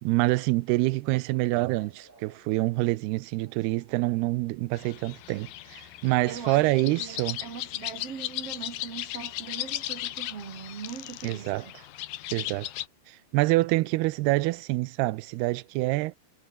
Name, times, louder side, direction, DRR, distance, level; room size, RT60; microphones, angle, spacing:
voice 1, 0.0-7.4 11.2-11.6 12.3-12.7 13.1-16.2, right 20 dB, 90° right, 2.7 m, -26 dB
sound 1, 1.1-10.6 12.3-14.7, left 1 dB, 10° left, 5.4 m, -66 dB
sound 2, 4.7-12.9, left 14 dB, 70° left, 2.6 m, -37 dB
voice 2, 6.2-11.7, right 6 dB, 45° right, 2.8 m, -41 dB
omnidirectional pair, 4.5 m